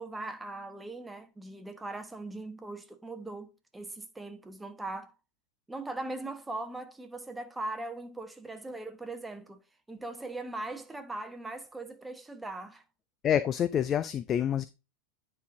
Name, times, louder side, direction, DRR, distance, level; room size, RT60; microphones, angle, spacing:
voice 1, 0.0-5.1 5.7-9.6 9.9-12.8, right 2 dB, 10° right, 1.1 m, -40 dB
voice 2, 13.2-14.7, left 9 dB, 25° left, 0.4 m, -27 dB
9.4 x 4.7 x 3.6 m
figure-of-eight pair, 90°, 0 cm